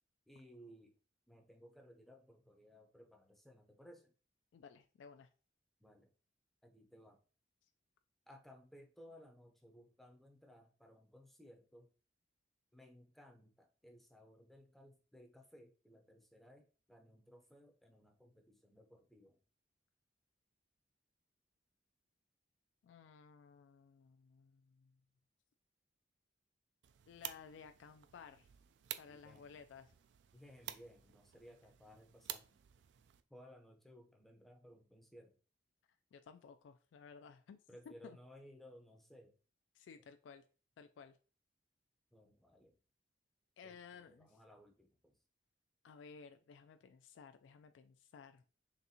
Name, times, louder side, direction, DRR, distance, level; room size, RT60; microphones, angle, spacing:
voice 1, 0.3-1.0 1.3-4.1 5.8-6.1 6.6-7.2 8.3-11.9 12.7-19.4 29.1-29.6 30.3-32.6 33.3-35.4 37.7-39.4 42.1-42.8 43.6-45.2, equal, ahead, 3 dB, 0.5 m, -60 dB
voice 2, 4.5-5.3 22.8-24.9 27.1-28.5 29.0-29.9 36.1-37.6 38.0-38.2 39.7-40.4 40.8-41.2 43.6-44.4 45.8-48.4, left 6 dB, 80° left, 8 dB, 0.3 m, -56 dB
sound 1, 26.8-33.2, right 12 dB, 70° right, 0.3 m, -51 dB
4.0 x 3.4 x 2.7 m, 0.39 s
head